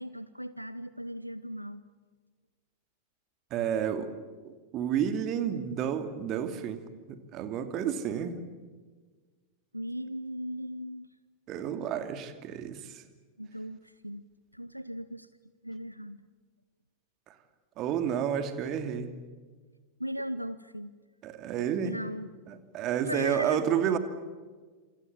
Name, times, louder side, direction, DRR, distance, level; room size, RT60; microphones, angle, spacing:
voice 1, 0.0-1.8 9.7-11.1 13.4-14.2 14.5-15.3 15.6-16.2 20.0-20.9 21.8-22.3 23.0-23.6, equal, 90° right, 16 dB, 0.7 m, -37 dB
voice 2, 3.5-4.1 4.4-6.8 7.1-8.4 11.5-13.0 17.8-19.2 21.2-22.0 22.5-24.0, right 9 dB, 35° right, 9 dB, 2.7 m, -30 dB
27.5 x 27.0 x 7.3 m, 1.4 s
figure-of-eight pair, 90°, 0 cm